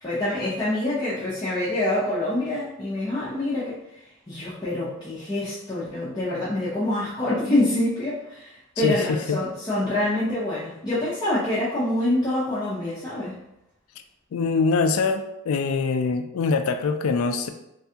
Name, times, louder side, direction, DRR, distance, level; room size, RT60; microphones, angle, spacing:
voice 1, 0.0-3.8 4.3-13.4, left 1 dB, 20° left, -11 dB, 0.6 m, -26 dB
voice 2, 8.8-9.4 14.3-17.5, left 4 dB, 75° left, 8 dB, 0.3 m, -24 dB
3.3 x 2.3 x 2.7 m, 0.85 s
head